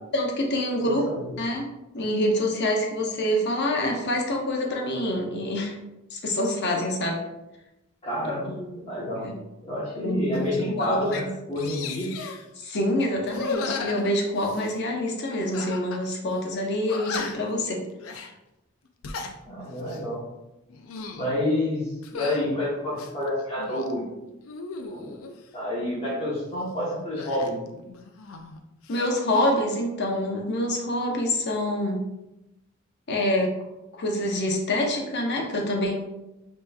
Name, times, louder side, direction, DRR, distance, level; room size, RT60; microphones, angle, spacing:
voice 1, 0.1-1.1 1.4-1.7 1.9-5.7 6.1-7.2 8.5-8.7 9.2-9.3 10.0-10.5 10.8-11.2 12.6-17.8 18.1-18.3 28.9-32.1 33.1-33.5 34.0-35.9, left 1 dB, 55° left, 0 dB, 0.8 m, -26 dB
voice 2, 0.8-1.3 8.0-9.3 9.6-12.1 19.5-20.2 21.1-24.1 24.9-25.1 25.5-27.7, left 1 dB, 30° left, -7 dB, 1.0 m, -29 dB
sound 1, 10.3-10.5 10.8-11.2 11.6-12.4 13.2-14.8 15.5-16.0 16.3-16.4 16.9-17.5 18.0-18.3 18.9-19.3 19.8-20.1 20.7-21.3 22.0-22.4 22.9-23.9 24.4-25.4 27.2-28.6 28.8-29.5, left 4 dB, 70° left, 0.4 m, -36 dB
5.3 x 3.0 x 2.3 m, 0.95 s
head